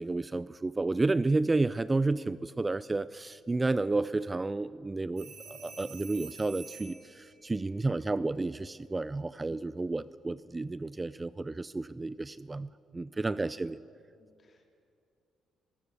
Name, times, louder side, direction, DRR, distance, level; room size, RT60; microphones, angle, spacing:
voice 1, 0.0-13.8, right 3 dB, 20° right, 17 dB, 0.4 m, -31 dB
sound 1, 5.2-7.2 9.5-9.8, right 5 dB, 60° right, 4.4 m, -48 dB
voice 2, 14.2-14.7, left 4 dB, 40° left, 3 dB, 3.5 m, -63 dB
23.5 x 16.0 x 8.3 m, 2.4 s
cardioid pair, 90°, 0 cm